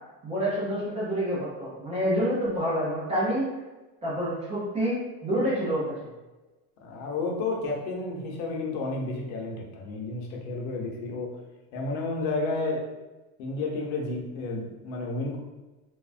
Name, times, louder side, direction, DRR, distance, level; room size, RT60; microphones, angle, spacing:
voice 1, 0.2-3.5 4.0-6.1, equal, 15° right, -9 dB, 0.3 m, -28 dB
voice 2, 6.8-11.4 11.7-12.9 13.4-15.4, left 3 dB, 70° left, -1 dB, 0.8 m, -31 dB
3.3 x 2.1 x 2.4 m, 1.1 s
cardioid pair, 155°, 45 cm